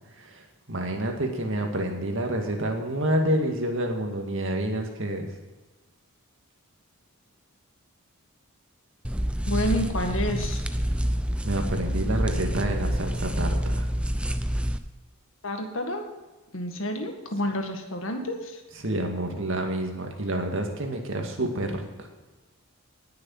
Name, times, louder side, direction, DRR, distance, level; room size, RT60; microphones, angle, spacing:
voice 1, 0.1-5.3 11.4-13.9 18.8-22.1, right 1 dB, 60° right, 3 dB, 2.1 m, -28 dB
sound 1, 9.0-14.8, equal, 5° right, 0.5 m, -27 dB
voice 2, 9.5-10.6 15.4-16.0 16.5-18.6, equal, 60° left, 4 dB, 1.8 m, -29 dB
19.0 x 6.8 x 5.7 m, 1.2 s
head